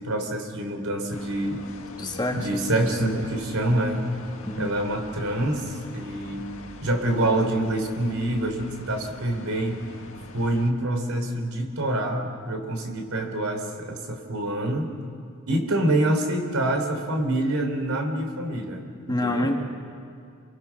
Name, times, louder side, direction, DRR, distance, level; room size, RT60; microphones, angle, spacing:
voice 1, 0.0-1.6 2.3-4.1 4.6-6.5 6.8-9.8 10.3-14.9 15.5-18.8 19.2-19.5, right 1 dB, 80° right, 4 dB, 3.5 m, -26 dB
sound 1, 1.1-10.7, left 2 dB, 70° left, 1.8 m, -43 dB
voice 2, 2.0-2.5 4.4-4.7 19.1-19.6, left 1 dB, 20° left, 3 dB, 1.8 m, -26 dB
29.0 x 22.5 x 5.9 m, 2.3 s
head